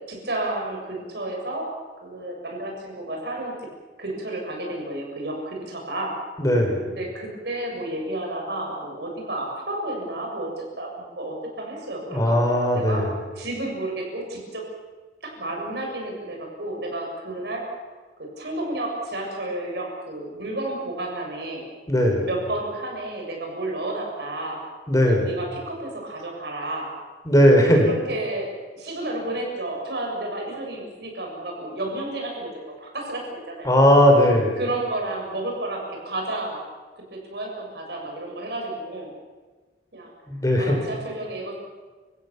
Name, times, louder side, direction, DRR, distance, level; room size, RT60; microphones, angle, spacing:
voice 1, 0.1-1.7 2.0-3.6 4.0-6.2 6.9-12.4 12.7-13.1 13.4-14.6 15.2-17.8 18.2-21.7 22.2-24.6 25.0-26.9 27.8-33.8 34.6-36.7 37.1-39.1 39.9-40.1 40.6-41.6, right 1 dB, 65° right, 0 dB, 7.0 m, -31 dB
voice 2, 6.4-6.8 12.1-13.1 21.9-22.3 24.9-25.3 27.2-27.9 33.6-34.6 40.3-40.8, equal, 20° left, 1 dB, 5.0 m, -18 dB
29.5 x 17.0 x 7.2 m, 1.4 s
head